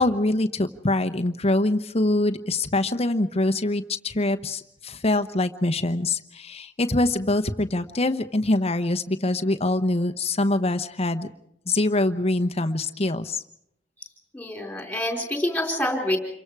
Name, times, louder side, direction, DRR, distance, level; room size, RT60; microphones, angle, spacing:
voice 1, 0.0-11.3 11.7-13.4, left 2 dB, 35° left, 9 dB, 1.0 m, -24 dB
voice 2, 14.3-16.2, left 1 dB, 5° left, 2 dB, 4.3 m, -26 dB
27.5 x 23.5 x 4.8 m, 0.74 s
head